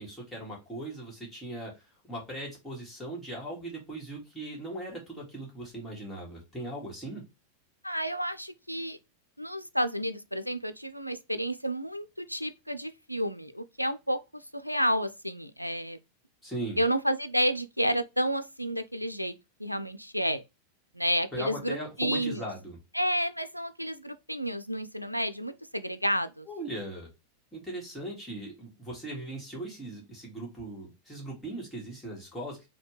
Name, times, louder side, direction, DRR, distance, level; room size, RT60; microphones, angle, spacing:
voice 1, 0.0-1.7 2.1-7.2 16.4-16.8 21.3-22.8 26.5-27.1 27.5-32.6, right 1 dB, 10° left, 2.1 m, -39 dB
voice 2, 7.8-9.0 9.4-14.2 14.5-16.0 16.8-19.3 19.6-20.4 20.9-22.5 22.9-26.5, equal, 90° right, 0.3 m, -30 dB
4.2 x 2.7 x 3.1 m
figure-of-eight pair, 90°, 0 cm